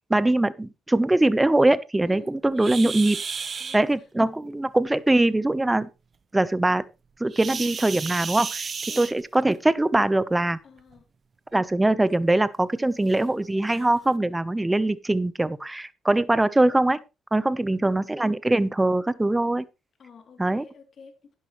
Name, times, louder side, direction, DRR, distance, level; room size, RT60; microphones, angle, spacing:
voice 1, 0.1-3.2 3.7-5.9 6.3-6.8 7.2-8.7 9.0-10.6 11.5-17.0 17.3-19.6 20.4-20.6, right 2 dB, 15° right, 0.9 m, -22 dB
sound 1, 2.6-3.8 7.3-9.6 10.8-11.0 11.5-11.6 12.2-12.3 13.1-13.2 13.7-13.9, right 5 dB, 40° right, 1.1 m, -33 dB
voice 2, 3.6-3.9 8.9-9.1 10.6-11.0 17.4-17.9 20.0-21.4, left 5 dB, 55° left, 3.2 m, -49 dB
11.5 x 11.0 x 3.2 m
cardioid pair, 90°, 0 cm